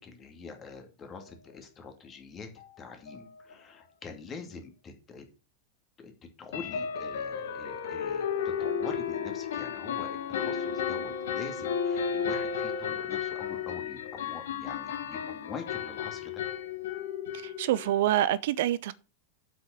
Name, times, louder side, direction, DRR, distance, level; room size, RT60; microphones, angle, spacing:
voice 1, 0.0-2.5 2.8-5.2 6.0-6.1 6.4-8.3 8.6-16.4, left 5 dB, 25° left, 2.5 m, -45 dB
sound 1, 2.6-2.7 3.1-3.2 3.5-3.6 6.5-18.0, left 7 dB, 60° left, 1.3 m, -33 dB
voice 2, 17.4-18.9, right 13 dB, 55° right, 0.5 m, -26 dB
7.8 x 6.3 x 7.0 m
figure-of-eight pair, 90°, 0 cm